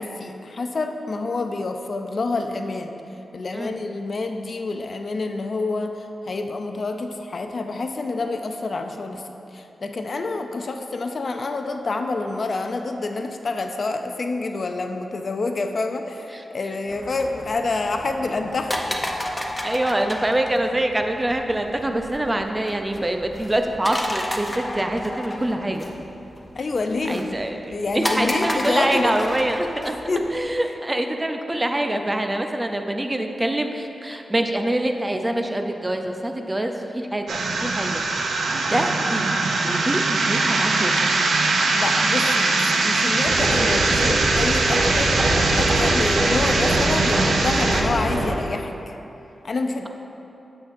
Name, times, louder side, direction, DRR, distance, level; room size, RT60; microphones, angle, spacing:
voice 1, 0.0-3.0 3.3-9.2 9.5-18.8 26.5-27.2 27.7-29.2 29.8-30.3 41.7-45.1 45.5-49.0 49.4-49.9, left 3 dB, 55° left, 5 dB, 0.5 m, -27 dB
sound 1, 16.9-30.5, left 1 dB, 15° left, 0.7 m, -32 dB
voice 2, 19.6-25.9 27.1-30.0 30.3-38.4 38.7-39.3 39.6-40.9, right 1 dB, 20° right, 5 dB, 0.5 m, -25 dB
sound 2, 37.3-47.8, right 3 dB, 85° right, 0.6 m, -22 dB
sound 3, 43.3-48.3, right 1 dB, 60° right, 1.1 m, -23 dB
8.7 x 7.1 x 2.6 m, 2.9 s
cardioid pair, 75°, 0 cm